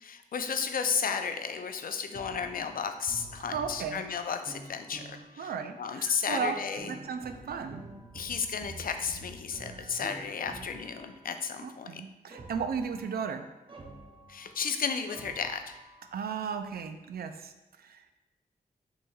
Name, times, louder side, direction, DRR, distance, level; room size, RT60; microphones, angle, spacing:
voice 1, 0.0-5.5 5.8-6.9 8.1-12.0 14.3-15.8, left 6 dB, 70° left, 7 dB, 0.4 m, -33 dB
sound 1, 2.1-5.6 6.3-11.4 12.3-14.8 15.1-16.1, right 2 dB, 35° right, 0.6 m, -48 dB
voice 2, 3.5-4.0 5.4-6.6 6.9-7.8 11.6-13.5 16.1-17.5 17.8-18.0, right 6 dB, 90° right, 7 dB, 0.4 m, -35 dB
6.0 x 3.1 x 2.3 m, 1.1 s
wide cardioid pair, 110°, 15 cm